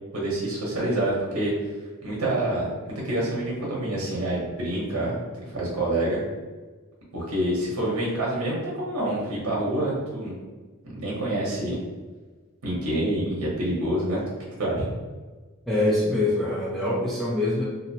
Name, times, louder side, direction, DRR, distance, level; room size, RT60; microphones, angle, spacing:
voice 1, 0.1-1.5 2.0-6.2 7.1-10.3 10.9-11.8 12.6-14.2 14.6-14.9, right 1 dB, 80° right, -4 dB, 0.7 m, -27 dB
voice 2, 15.7-17.6, left 1 dB, ahead, -8 dB, 0.4 m, -24 dB
2.6 x 2.0 x 2.7 m, 1.3 s
head